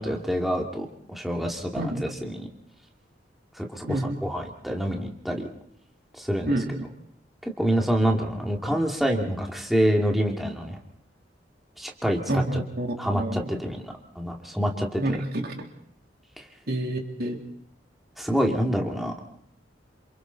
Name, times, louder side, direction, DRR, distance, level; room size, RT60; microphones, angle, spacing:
voice 1, 0.0-2.5 3.5-5.5 6.2-6.5 7.4-10.8 11.8-12.6 13.0-15.2 16.4-16.5 18.2-19.1, equal, ahead, 0 dB, 2.5 m, -27 dB
voice 2, 1.7-2.1 3.9-4.2 6.5-6.8 12.3-13.6 15.0-15.6 16.7-17.4, right 1 dB, 60° right, 2 dB, 3.3 m, -28 dB
29.0 x 27.5 x 4.1 m, 0.64 s
head